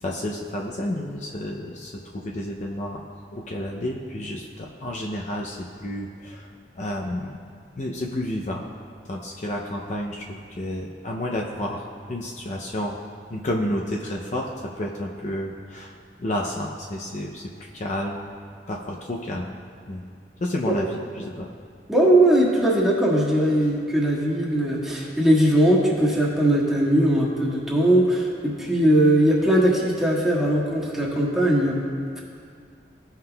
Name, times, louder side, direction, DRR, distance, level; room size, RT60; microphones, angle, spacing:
voice 1, 0.0-3.0 3.3-6.5 6.7-7.4 7.8-8.6 9.1-13.0 13.3-14.5 14.8-15.9 16.2-18.3 18.7-19.6 19.9-20.1 20.4-21.5, left 1 dB, 45° left, -1 dB, 0.5 m, -30 dB
voice 2, 21.9-31.8 32.1-32.2, right 1 dB, 5° right, -6 dB, 1.4 m, -20 dB
15.0 x 5.7 x 2.3 m, 2.2 s
head